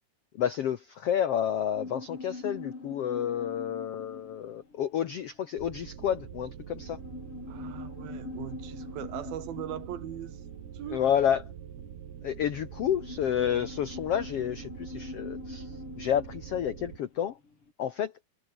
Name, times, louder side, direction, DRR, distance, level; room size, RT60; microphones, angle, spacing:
voice 1, 0.4-7.0 10.9-11.4 12.2-17.4 17.8-18.1, left 9 dB, 80° left, 1.3 m, -30 dB
sound 1, 1.8-17.7, left 3 dB, 35° left, 6.1 m, -44 dB
sound 2, 5.6-17.0, right 9 dB, 90° right, 4.6 m, -45 dB
voice 2, 7.5-10.4 10.7-11.0, right 11 dB, 75° right, 3.5 m, -40 dB
omnidirectional pair, 4.4 m